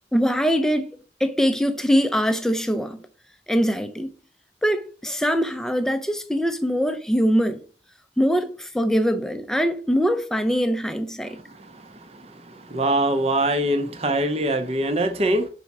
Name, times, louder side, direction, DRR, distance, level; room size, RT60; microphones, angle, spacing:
voice 1, 0.1-3.1 3.5-4.1 4.6-7.6 8.2-11.4, equal, 5° left, 0.5 m, -22 dB
voice 2, 12.5-15.5, right 1 dB, 35° right, 0.7 m, -23 dB
4.7 x 4.2 x 5.9 m
head